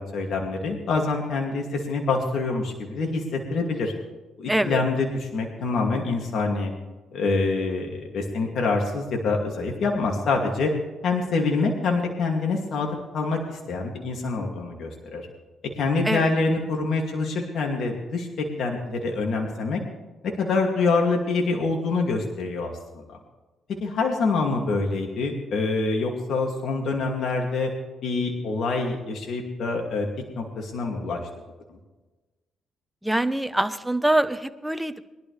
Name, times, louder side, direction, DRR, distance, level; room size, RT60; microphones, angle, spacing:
voice 1, 0.0-3.9 4.4-6.7 7.1-10.7 11.0-15.3 15.8-19.8 20.4-23.2 23.8-27.7 28.0-30.1 30.4-31.2 31.7-31.8, left 3 dB, 65° left, 1 dB, 2.5 m, -26 dB
voice 2, 4.5-4.8 16.0-16.3 33.0-35.0, right 1 dB, 5° right, 10 dB, 0.9 m, -24 dB
21.5 x 12.0 x 3.4 m, 1.2 s
cardioid pair, 90°, 0 cm